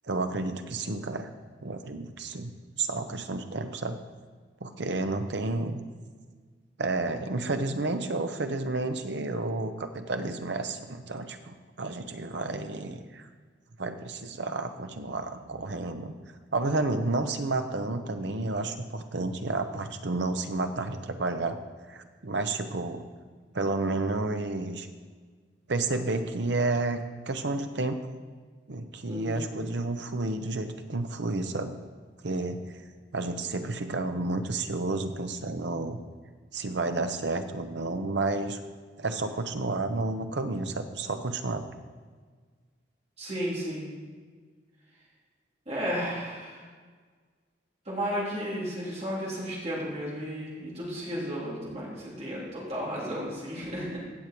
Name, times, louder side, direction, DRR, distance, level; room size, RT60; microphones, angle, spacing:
voice 1, 0.1-1.3 1.6-4.0 4.6-5.8 6.8-13.3 13.8-16.1 16.5-21.6 21.9-23.0 23.5-24.9 25.7-28.0 28.7-31.8 32.2-32.8 33.1-36.0 36.5-38.6 39.0-41.7, right 2 dB, 65° right, 7 dB, 0.8 m, -31 dB
voice 2, 29.1-29.5 43.2-43.9 45.7-46.7 47.9-54.0, equal, 35° right, -6 dB, 3.5 m, -33 dB
16.0 x 6.8 x 4.6 m, 1.5 s
head